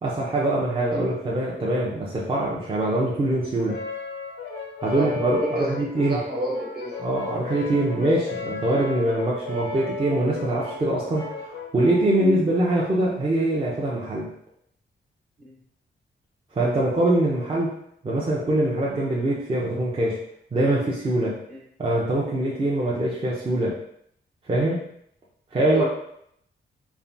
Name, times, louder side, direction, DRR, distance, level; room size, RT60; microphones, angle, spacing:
voice 1, 0.0-3.8 4.8-6.2 7.0-14.3 16.5-17.7 18.0-20.2 20.5-21.4 21.8-23.8 24.5-24.8 25.5-25.8, right 1 dB, 30° right, -5 dB, 0.5 m, -23 dB
Brass instrument, 3.7-12.2, left 3 dB, 85° left, 0.6 m, -35 dB
voice 2, 5.4-5.7 6.1-7.0 12.2-12.4 15.4-15.5 21.5-21.6 25.7-25.8, right 1 dB, 55° right, -4 dB, 1.1 m, -29 dB
3.2 x 2.1 x 2.6 m, 0.71 s
wide cardioid pair, 120°, 20 cm